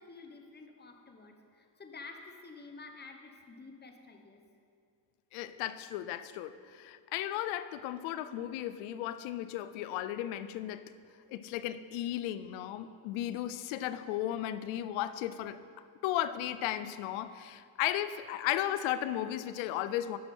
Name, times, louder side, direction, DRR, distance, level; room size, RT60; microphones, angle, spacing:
voice 1, 0.0-4.4, left 3 dB, 20° left, 4 dB, 1.1 m, -50 dB
voice 2, 5.3-10.9 11.3-15.6 16.0-20.2, left 12 dB, 85° left, 13 dB, 0.6 m, -35 dB
12.0 x 6.0 x 4.4 m, 2.3 s
supercardioid pair, 65°, 46 cm